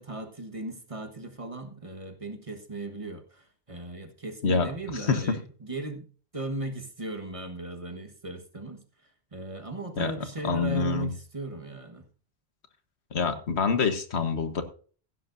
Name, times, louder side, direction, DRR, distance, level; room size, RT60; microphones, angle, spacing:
voice 1, 0.0-6.0 6.3-8.8 9.3-12.1, right 2 dB, 30° right, 5 dB, 1.3 m, -37 dB
voice 2, 10.4-11.1 13.1-14.6, left 5 dB, 85° left, 9 dB, 1.5 m, -26 dB
15.5 x 11.0 x 2.6 m, 0.41 s
omnidirectional pair, 1.1 m